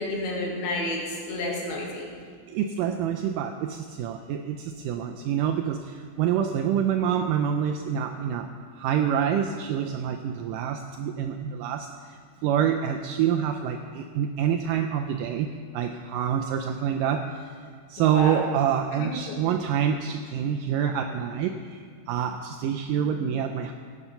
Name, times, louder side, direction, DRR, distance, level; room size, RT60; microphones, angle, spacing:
voice 1, 0.0-2.1 18.0-18.4 19.0-19.1, left 2 dB, 85° left, -1 dB, 3.9 m, -30 dB
voice 2, 2.5-15.5 15.7-17.5 17.9-23.7, right 8 dB, 85° right, 5 dB, 1.9 m, -27 dB
17.5 x 7.3 x 5.6 m, 2.1 s
omnidirectional pair, 4.3 m